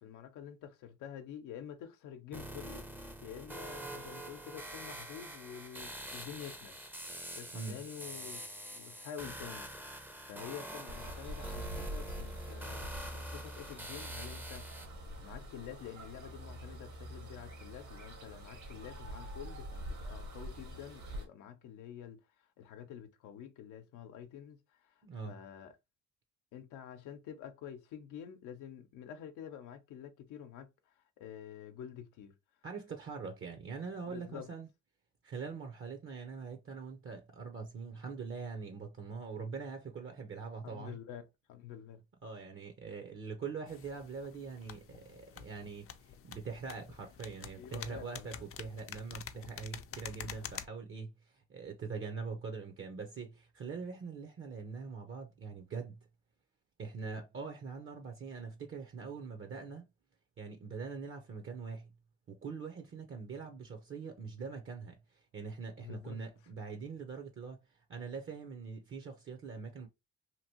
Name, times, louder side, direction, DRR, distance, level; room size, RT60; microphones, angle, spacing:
voice 1, 0.0-2.9 3.2-6.8 7.3-8.4 8.7-14.8 15.2-25.7 26.5-32.3 34.0-34.5 40.6-42.0 47.6-48.4 65.8-66.3, left 9 dB, 90° left, 0.7 m, -48 dB
sound 1, 2.3-14.9, right 1 dB, 5° right, 0.5 m, -46 dB
sound 2, 10.9-21.3, equal, 65° right, 1.4 m, -45 dB
voice 2, 25.0-25.4 32.6-34.7 35.2-41.0 42.2-51.1 51.5-56.0 56.8-59.8 60.4-61.9 62.3-67.6 67.9-69.9, right 5 dB, 45° right, 0.7 m, -43 dB
sound 3, 43.7-50.7, left 8 dB, 50° left, 0.5 m, -48 dB
2.9 x 2.6 x 2.9 m
cardioid pair, 90°, 30 cm